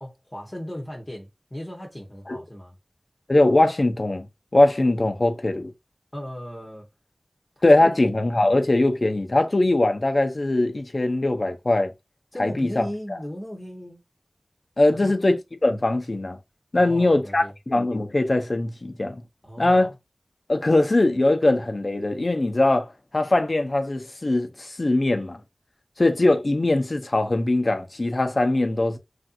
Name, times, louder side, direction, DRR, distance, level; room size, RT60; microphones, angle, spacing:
voice 1, 0.0-2.7 6.1-6.9 7.6-8.0 12.3-14.0 14.9-15.1 16.8-17.5 19.4-19.9, equal, 25° left, 1.0 m, -37 dB
voice 2, 3.3-4.3 4.5-5.7 7.6-11.9 12.4-12.9 14.8-16.4 16.7-19.2 19.6-19.9 20.5-25.4 26.0-29.0, left 2 dB, 60° left, 0.7 m, -21 dB
3.2 x 2.7 x 2.4 m
wide cardioid pair, 45°, 0 cm